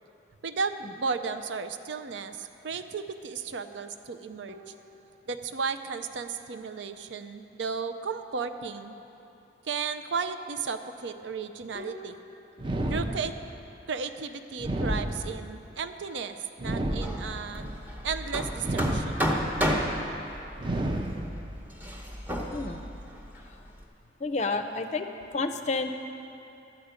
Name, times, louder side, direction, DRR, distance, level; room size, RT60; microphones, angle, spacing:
voice 1, 0.4-4.6 5.3-8.9 9.6-12.2 12.9-13.3 13.9-16.3 16.6-17.7 18.0-19.3, right 5 dB, 80° right, 9 dB, 0.5 m, -34 dB
sound 1, 4.5-5.7 11.7-12.8, left 2 dB, 45° right, 0.9 m, -47 dB
sound 2, 12.6-13.7 14.6-15.7 16.6-17.6 18.6-19.6 20.6-21.6, right 1 dB, 25° right, 0.5 m, -31 dB
Hammer, 16.9-23.8, equal, 10° right, 0.8 m, -32 dB
voice 2, 22.5-22.8 24.2-25.1 25.3-25.9, left 3 dB, 40° left, 7 dB, 0.5 m, -30 dB
12.0 x 5.0 x 8.1 m, 2.8 s
head